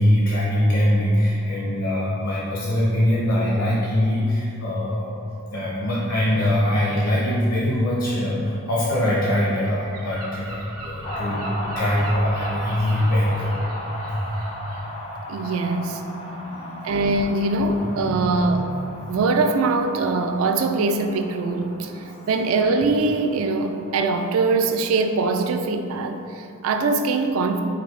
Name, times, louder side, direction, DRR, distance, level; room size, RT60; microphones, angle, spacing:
voice 1, 0.0-5.1 5.5-13.5 14.0-14.2 16.2-17.0 17.8-18.5, left 1 dB, 70° left, -6 dB, 0.7 m, -23 dB
Gull seagull, 9.0-14.8, right 2 dB, 85° right, 0.7 m, -39 dB
sound 1, 11.0-25.5, left 1 dB, 30° left, 0.4 m, -37 dB
voice 2, 15.3-16.0 16.8-18.7 19.1-27.6, right 3 dB, 65° right, 6 dB, 0.3 m, -22 dB
5.2 x 2.7 x 3.1 m, 2.6 s
head